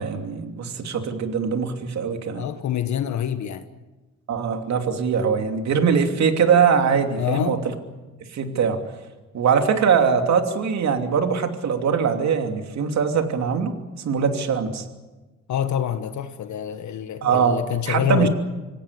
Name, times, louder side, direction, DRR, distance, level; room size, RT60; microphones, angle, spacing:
voice 1, 0.0-2.4 4.3-7.6 8.3-8.8 9.3-13.8 14.0-14.8 17.2-17.6 17.9-18.3, right 6 dB, 65° right, 2.9 m, -22 dB
voice 2, 2.3-3.6 7.2-7.6 15.5-18.3, left 10 dB, 70° left, 1.5 m, -26 dB
26.0 x 17.0 x 9.9 m
cardioid pair, 90°, 30 cm